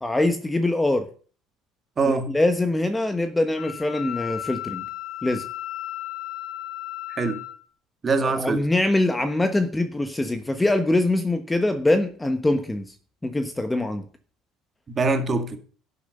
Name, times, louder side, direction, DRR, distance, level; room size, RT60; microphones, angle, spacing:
voice 1, 0.0-1.1 2.0-4.8 5.2-5.4 8.2-12.9 13.2-14.0, left 2 dB, 10° left, 1.1 m, -23 dB
voice 2, 2.0-2.3 7.1-7.4 8.0-8.6 14.9-15.6, right 3 dB, 30° right, 2.0 m, -23 dB
Wind instrument woodwind instrument, 3.6-7.6, left 13 dB, 70° left, 2.3 m, -35 dB
11.5 x 7.0 x 6.6 m
cardioid pair, 120°, 0 cm